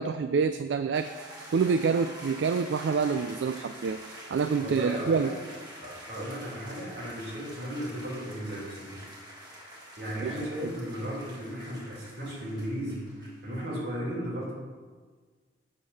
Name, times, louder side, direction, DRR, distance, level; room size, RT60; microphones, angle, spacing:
voice 1, 0.0-5.3 10.2-10.4 10.6-10.7, right 5 dB, 80° right, 10 dB, 0.3 m, -27 dB
sound 1, 0.9-13.6, equal, 25° right, 1.6 m, -46 dB
voice 2, 4.6-5.3 5.8-9.0 10.0-14.5, equal, 60° right, -4 dB, 3.1 m, -35 dB
7.2 x 6.4 x 6.2 m, 1.5 s
head